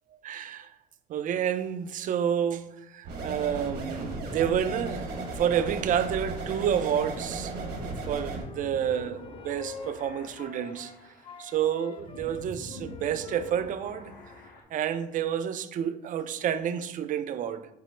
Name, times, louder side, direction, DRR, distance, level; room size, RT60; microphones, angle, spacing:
voice 1, 0.2-0.7 1.1-10.9 11.4-14.1 14.7-17.7, right 9 dB, 50° right, 0.4 m, -29 dB
sound 1, 3.0-8.4, right 3 dB, 70° right, 1.1 m, -35 dB
sound 2, 3.3-14.6, left 2 dB, 60° left, 1.0 m, -46 dB
Wind instrument woodwind instrument, 7.9-11.0 11.2-14.5, left 5 dB, 30° left, 0.4 m, -47 dB
5.9 x 2.0 x 4.4 m
cardioid pair, 110°, 17 cm